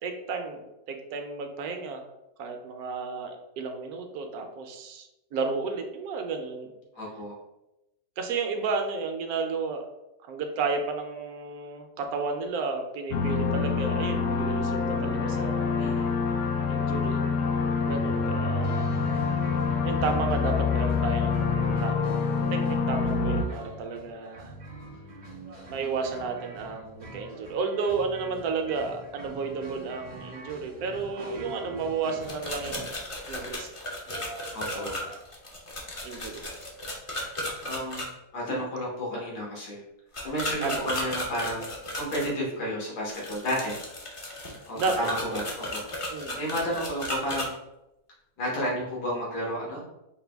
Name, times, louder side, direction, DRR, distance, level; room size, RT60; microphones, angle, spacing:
voice 1, 0.0-2.0 2.4-6.7 8.2-9.8 10.2-15.7 16.7-17.2 17.6-18.8 19.8-24.5 25.7-33.7 34.1-35.2 36.0-36.4 40.6-40.9 44.7-45.4 46.1-46.4, right 4 dB, 70° right, 4 dB, 1.0 m, -32 dB
voice 2, 6.9-7.3 15.7-16.1 34.5-34.9 37.6-39.8 40.2-41.7 42.0-43.7 44.7-45.8 46.3-47.6 48.4-49.8, equal, 90° left, -4 dB, 1.8 m, -32 dB
sound 1, 13.1-23.4, left 5 dB, 70° left, 0.9 m, -26 dB
sound 2, 18.6-32.9, right 2 dB, 45° right, 0.6 m, -45 dB
sound 3, 32.2-38.1 40.1-42.3 43.1-47.5, left 1 dB, 50° left, 0.3 m, -35 dB
4.8 x 2.2 x 3.3 m, 0.91 s
omnidirectional pair, 1.7 m